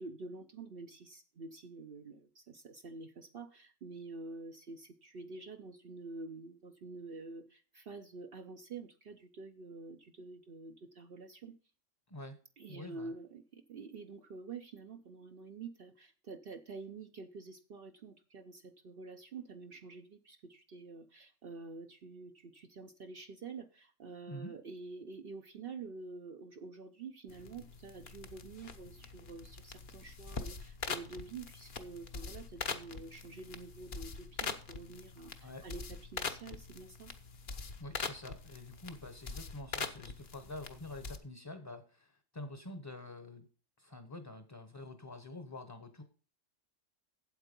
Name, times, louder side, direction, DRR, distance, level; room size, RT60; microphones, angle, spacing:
voice 1, 0.0-11.5 12.6-37.1, right 4 dB, 55° right, 6 dB, 0.9 m, -48 dB
voice 2, 12.1-12.4 12.7-13.1 24.3-24.5 35.4-35.7 37.8-43.5 43.8-46.0, left 2 dB, 20° left, 9 dB, 0.9 m, -47 dB
sound 1, 27.3-41.2, left 5 dB, 45° left, 0.9 m, -43 dB
8.2 x 8.0 x 5.2 m, 0.38 s
omnidirectional pair, 1.3 m